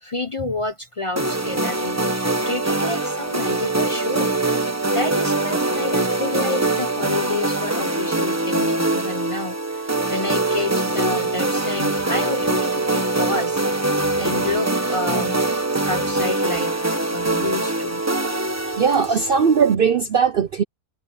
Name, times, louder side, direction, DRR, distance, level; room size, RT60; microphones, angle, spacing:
voice 1, 0.0-4.3 4.9-13.6 14.2-15.4 15.7-18.0 19.0-19.3, left 2 dB, 25° left, 0.8 m, -29 dB
sound 1, 1.2-19.7, right 2 dB, 10° right, 1.1 m, -23 dB
voice 2, 18.8-20.6, right 6 dB, 55° right, 0.7 m, -18 dB
omnidirectional pair, 1.5 m